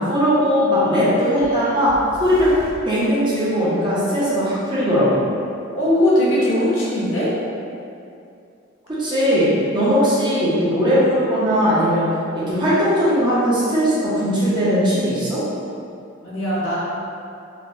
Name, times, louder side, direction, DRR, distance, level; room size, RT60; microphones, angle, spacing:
voice 1, 0.1-1.9 2.2-2.5 2.8-5.3 9.0-12.1 12.3-15.4, equal, 20° right, -9 dB, 0.5 m, -19 dB
sound 1, 1.4-3.0, equal, 40° left, 0.4 m, -37 dB
voice 2, 5.7-7.3 16.2-16.8, left 1 dB, 65° left, -7 dB, 0.7 m, -19 dB
3.2 x 2.0 x 2.5 m, 2.5 s
head